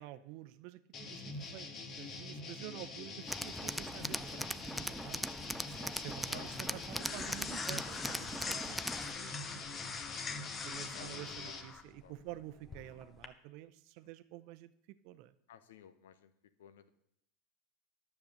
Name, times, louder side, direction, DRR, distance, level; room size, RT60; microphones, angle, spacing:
voice 1, 0.0-5.2 5.7-9.8 10.6-14.7 15.0-15.3, right 14 dB, 60° right, 13 dB, 0.7 m, -49 dB
sound 1, 0.9-11.6, left 3 dB, 45° left, 1.7 m, -45 dB
Tools, 3.3-9.1, equal, ahead, 0.3 m, -40 dB
sound 2, 4.8-13.3, left 5 dB, 30° left, 1.0 m, -45 dB
voice 2, 6.3-7.2 10.8-11.2 11.4-11.6 12.0-12.1 15.5-16.3 16.6-16.9, left 9 dB, 80° left, 13 dB, 0.8 m, -55 dB
10.5 x 7.1 x 6.6 m, 0.77 s
hypercardioid pair, 95°, 0 cm